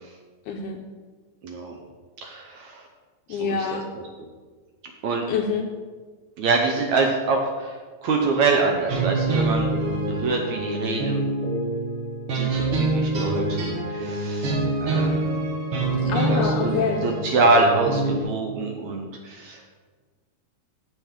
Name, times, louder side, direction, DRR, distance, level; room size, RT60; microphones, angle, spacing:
voice 1, 0.5-0.8 3.3-3.8 5.3-5.7 16.1-17.1, left 5 dB, 75° left, 2 dB, 1.9 m, -26 dB
voice 2, 1.4-1.8 2.2-2.8 3.3-4.0 5.0-5.3 6.4-7.8 8.0-9.7 10.1-11.2 12.3-14.6 14.8-15.5 15.8-16.7 17.0-19.8, right 3 dB, 70° right, 2 dB, 1.8 m, -25 dB
sound 1, 8.9-18.2, right 2 dB, 55° right, 1.6 m, -25 dB
14.5 x 6.7 x 3.7 m, 1.5 s
omnidirectional pair, 4.0 m